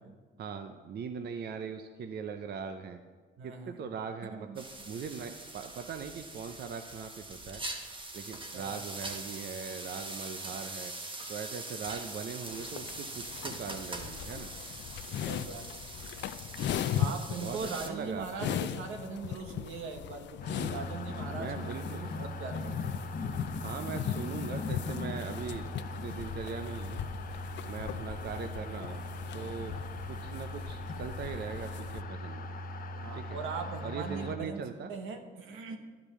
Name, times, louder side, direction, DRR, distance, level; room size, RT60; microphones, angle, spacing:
voice 1, 0.4-3.0 3.4-7.6 8.1-10.9 11.3-14.5 17.4-17.6 17.8-18.6 21.4-22.1 23.6-25.7 26.0-27.0 27.7-29.0 29.3-29.8 30.1-32.5 33.1-33.4 33.8-34.9, right 6 dB, 55° right, 7 dB, 0.6 m, -40 dB
voice 2, 3.4-3.9 4.3-4.6 8.5-8.8 15.2-15.9 17.0-23.0 27.8-28.1 33.0-35.8, right 4 dB, 80° right, 5 dB, 1.2 m, -41 dB
sound 1, 4.6-17.9, right 2 dB, 25° right, 1.2 m, -43 dB
sound 2, 12.5-32.0, left 10 dB, 65° left, 0.4 m, -39 dB
sound 3, 20.4-34.4, left 2 dB, 45° left, 0.9 m, -39 dB
11.0 x 5.1 x 7.2 m, 1.4 s
cardioid pair, 90°, 20 cm